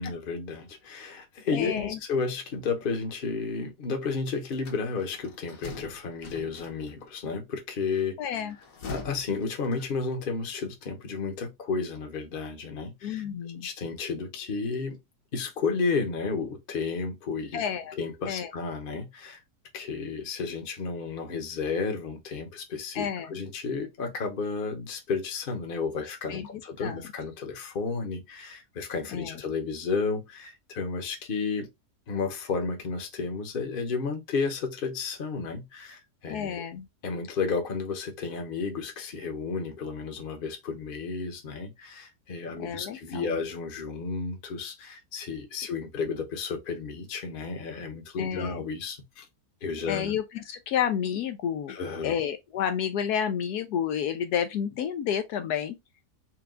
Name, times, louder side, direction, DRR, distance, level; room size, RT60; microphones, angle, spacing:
voice 1, 0.0-8.2 8.9-13.3 13.5-15.0 15.3-17.6 17.9-19.4 19.7-31.7 32.1-36.6 37.0-49.3 49.6-50.1 51.7-52.1, left 4 dB, 40° left, 0.9 m, -32 dB
voice 2, 1.5-2.0 8.2-8.5 13.0-13.7 17.5-18.0 18.2-18.5 22.9-23.4 26.3-27.1 29.1-29.4 36.3-36.9 42.6-43.3 48.2-48.6 49.9-51.8 52.0-55.8, left 8 dB, 75° left, 1.1 m, -30 dB
sound 1, 4.5-7.1 8.4-10.2, left 3 dB, 60° left, 1.3 m, -43 dB
4.6 x 2.3 x 3.6 m
omnidirectional pair, 1.7 m